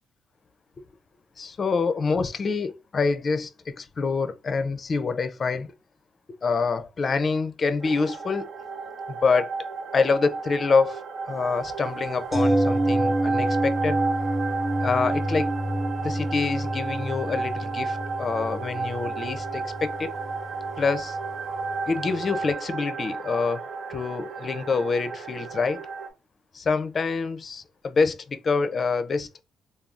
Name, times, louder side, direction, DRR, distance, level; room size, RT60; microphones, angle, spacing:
voice 1, 1.4-5.7 6.4-8.5 9.1-9.5 9.9-11.0 11.3-14.0 14.8-15.5 16.0-20.1 20.8-21.2 21.9-23.6 23.9-25.8 26.5-29.3, left 4 dB, 40° left, 0.4 m, -26 dB
sound 1, 7.8-26.1, right 4 dB, 75° right, 0.7 m, -33 dB
sound 2, 12.3-22.2 22.5-22.6, right 1 dB, 35° right, 1.0 m, -28 dB
3.4 x 2.3 x 2.4 m
cardioid pair, 90°, 0 cm